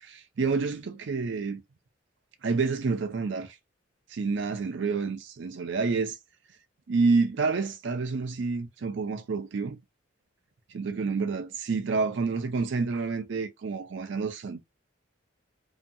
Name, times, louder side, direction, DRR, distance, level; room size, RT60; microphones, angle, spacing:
voice 1, 0.0-1.6 2.4-3.6 4.1-6.2 6.9-9.8 10.7-14.6, right 4 dB, 60° right, 0.4 m, -28 dB
2.7 x 2.2 x 2.5 m
head